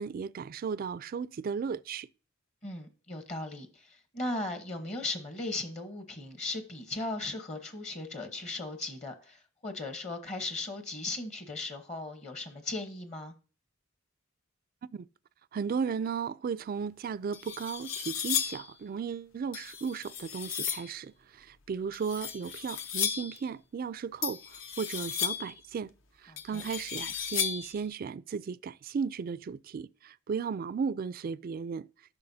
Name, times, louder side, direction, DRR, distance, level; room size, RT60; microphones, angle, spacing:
voice 1, 0.0-2.1 14.9-15.1 15.5-24.4 24.8-25.9 26.2-31.9, right 6 dB, 45° right, 0.3 m, -35 dB
voice 2, 2.6-13.3 26.3-26.6, left 2 dB, 35° left, 1.1 m, -37 dB
sound 1, 16.8-16.9 17.3-18.7 19.5-20.9 21.9-23.4 24.2-25.6 26.4-27.8, left 8 dB, 65° left, 0.8 m, -34 dB
13.5 x 6.1 x 2.7 m
head